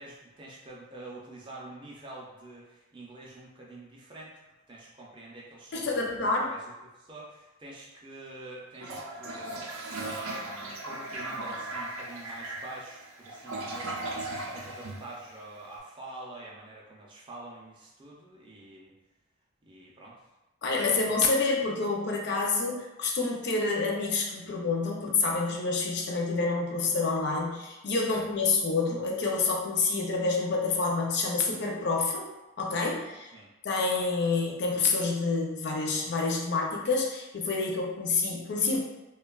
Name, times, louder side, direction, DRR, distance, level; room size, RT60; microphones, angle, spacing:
voice 1, 0.0-4.3 4.7-18.9 19.6-20.2 20.9-21.0 28.1-28.2 33.3-33.5, right 2 dB, 20° right, -4 dB, 0.4 m, -46 dB
voice 2, 5.7-6.5 20.6-32.3 32.6-33.3 33.6-38.8, left 3 dB, 50° left, -1 dB, 0.4 m, -28 dB
Toilet flush, 8.7-15.7, right 2 dB, 80° right, 0.4 m, -37 dB
3.1 x 2.2 x 2.2 m, 1.0 s
head